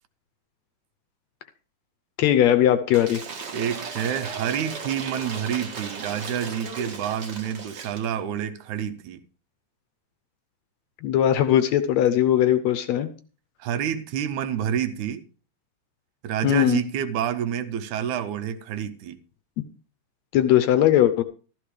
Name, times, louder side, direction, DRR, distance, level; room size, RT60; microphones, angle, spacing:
voice 1, 2.2-3.2 11.0-13.1 16.4-16.8 20.3-21.2, left 11 dB, 75° left, 1.8 m, -19 dB
Cheering / Applause / Crowd, 2.9-8.1, right 5 dB, 45° right, 1.5 m, -36 dB
voice 2, 3.5-9.2 13.6-15.2 16.2-19.2, right 9 dB, 80° right, 2.1 m, -28 dB
13.5 x 13.0 x 3.3 m
omnidirectional pair, 3.5 m